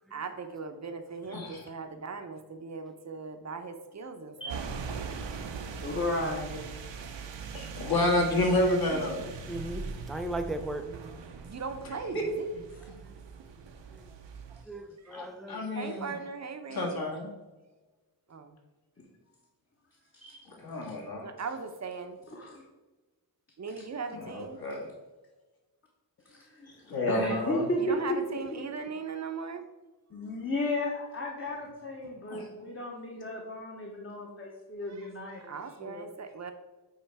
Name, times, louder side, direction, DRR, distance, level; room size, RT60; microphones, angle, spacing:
voice 1, 0.1-4.6 8.9-9.7 10.9-12.5 15.0-15.1 15.7-17.0 18.3-18.6 21.2-22.2 23.6-24.6 27.8-29.6 34.9-35.0 35.4-36.5, right 5 dB, 40° right, 7 dB, 0.7 m, -39 dB
voice 2, 1.3-1.7 7.5-9.2 12.1-12.2 15.1-16.1 16.7-17.3 20.5-21.3 24.1-24.9 26.9-27.7 32.3-32.5, left 1 dB, 55° left, -1 dB, 1.7 m, -29 dB
voice 3, 4.4-4.8 5.8-6.6 12.7-12.8 19.0-19.1 20.1-20.4 20.8-20.9 22.3-22.6 26.2-26.7 27.1-28.6 30.1-35.5 35.8-36.0, left 1 dB, 30° left, -2 dB, 1.0 m, -34 dB
sound 1, 4.5-14.6, right 5 dB, 85° right, 0.8 m, -41 dB
voice 4, 9.5-11.2 13.9-14.1 14.7-16.1, right 1 dB, ahead, 7 dB, 0.3 m, -38 dB
8.7 x 3.2 x 4.7 m, 1.2 s
wide cardioid pair, 150°, 42 cm